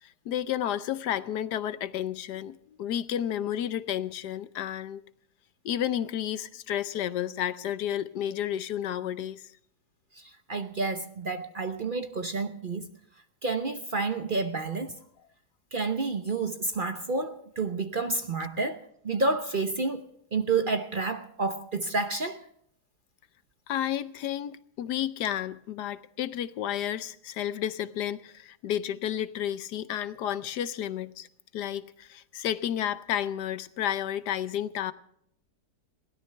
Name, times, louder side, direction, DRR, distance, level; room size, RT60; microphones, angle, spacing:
voice 1, 0.0-5.0 5.6-9.5 23.7-31.3 31.5-34.9, left 10 dB, 80° left, 1.3 m, -31 dB
voice 2, 10.2-12.9 13.4-15.0 15.7-20.0 20.3-22.4, right 3 dB, 40° right, 0.8 m, -30 dB
21.5 x 17.0 x 3.4 m
omnidirectional pair, 1.8 m